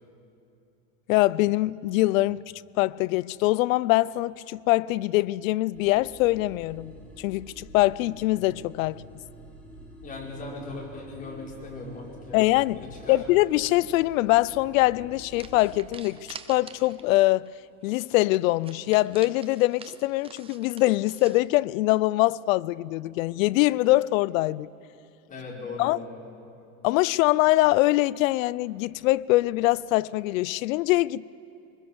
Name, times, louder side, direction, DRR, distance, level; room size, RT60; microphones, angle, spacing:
voice 1, 1.1-2.4 2.8-9.0 12.3-12.8 13.1-16.2 16.5-17.5 17.8-24.7 25.8-26.0 26.8-31.3, left 18 dB, 65° left, 0.6 m, -23 dB
sound 1, 5.7-15.9, equal, 5° left, 3.2 m, -47 dB
voice 2, 10.0-13.2 25.3-26.3, left 2 dB, 20° left, 4.9 m, -39 dB
sound 2, 14.6-14.8 15.4-17.1 17.5-17.6 17.8-17.9 18.3-21.5, right 6 dB, 15° right, 0.6 m, -47 dB
23.5 x 21.0 x 7.1 m
supercardioid pair, 150°, 44 cm